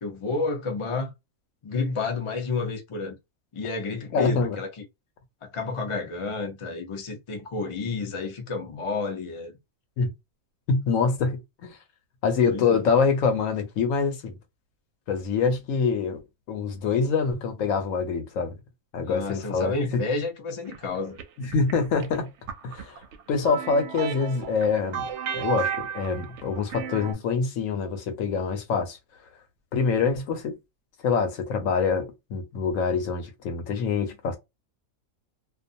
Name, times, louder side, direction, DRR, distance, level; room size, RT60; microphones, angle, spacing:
voice 1, 0.0-1.1 1.6-3.2 3.5-4.8 5.4-9.5 12.5-12.9 19.0-21.2, left 4 dB, 40° left, 0.4 m, -30 dB
voice 2, 4.1-4.6 10.0-10.1 10.7-11.8 12.2-14.4 15.1-16.2 16.5-18.5 18.9-20.0 21.4-22.3 22.6-23.0 23.3-29.0 29.7-30.5 31.0-34.4, left 5 dB, 70° left, 1.0 m, -25 dB
sound 1, 20.7-27.1, right 9 dB, 65° right, 0.8 m, -33 dB
2.4 x 2.3 x 2.6 m
omnidirectional pair, 1.5 m